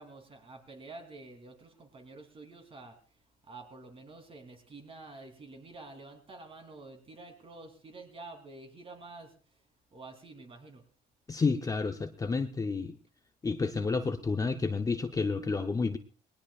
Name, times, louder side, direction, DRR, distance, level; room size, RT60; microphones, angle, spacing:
voice 1, 0.0-3.0 3.4-9.3 9.9-10.8, right 3 dB, 35° right, 5 dB, 3.3 m, -49 dB
voice 2, 11.3-13.0 13.4-16.0, left 4 dB, 20° left, 6 dB, 0.7 m, -30 dB
20.0 x 19.0 x 2.4 m, 0.41 s
cardioid pair, 110°, 17 cm